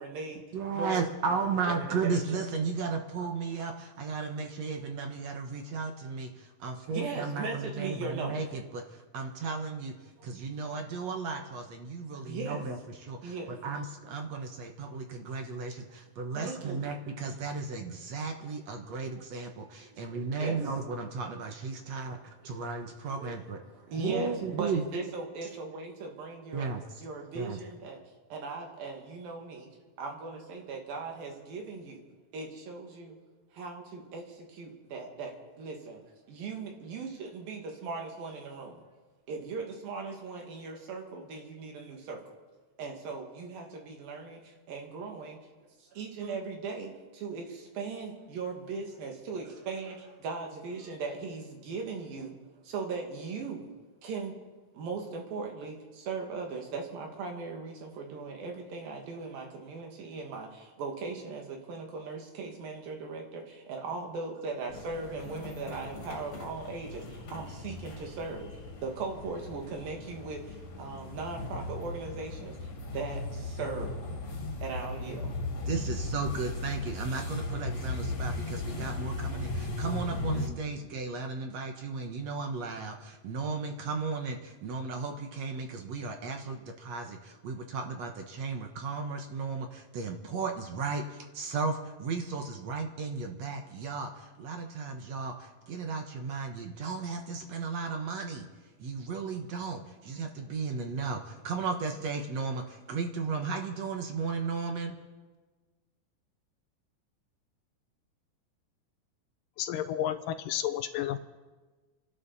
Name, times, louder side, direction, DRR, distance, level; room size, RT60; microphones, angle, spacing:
voice 1, 0.0-0.4 0.7-2.4 6.9-8.3 10.2-10.3 12.2-12.6 13.2-13.5 16.3-16.8 19.9-20.6 22.6-22.7 23.1-23.4 23.7-26.7 27.0-28.0 28.3-29.7 30.0-32.0 32.3-33.2 33.5-36.0 36.3-38.8 39.3-42.3 42.8-45.4 45.8-52.4 52.6-53.6 54.0-54.4 54.7-68.5 68.8-74.0 74.6-75.3, right 4 dB, 75° right, 1 dB, 3.9 m, -39 dB
voice 2, 0.5-9.9 10.2-23.6 24.0-24.8 26.5-27.0 27.3-27.6 75.7-98.5 98.8-105.0, right 4 dB, 60° right, 4 dB, 2.0 m, -35 dB
sound 1, 64.7-80.5, left 2 dB, 45° left, 2.7 m, -37 dB
voice 3, 109.6-111.2, left 11 dB, 80° left, 11 dB, 2.1 m, -31 dB
29.5 x 11.5 x 4.2 m, 1.3 s
omnidirectional pair, 4.1 m